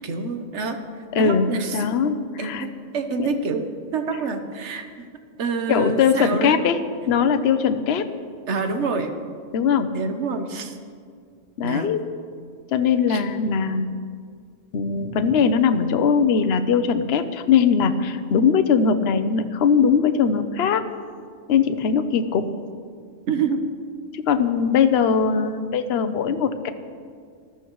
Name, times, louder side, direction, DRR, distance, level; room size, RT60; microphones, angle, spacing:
voice 1, 0.0-1.9 2.4-3.7 3.9-4.9 5.4-6.7 8.5-9.1 9.9-10.8 11.6-11.9 13.1-13.2 23.3-23.6, right 4 dB, 65° right, 6 dB, 1.3 m, -27 dB
voice 2, 1.1-2.7 3.2-3.4 5.7-6.8 7.1-8.1 9.5-9.9 11.6-12.0 12.7-13.9 14.7-20.8 21.5-22.5 24.1-26.7, left 6 dB, 60° left, 9 dB, 0.9 m, -20 dB
20.0 x 14.0 x 3.1 m, 2.1 s
omnidirectional pair, 1.3 m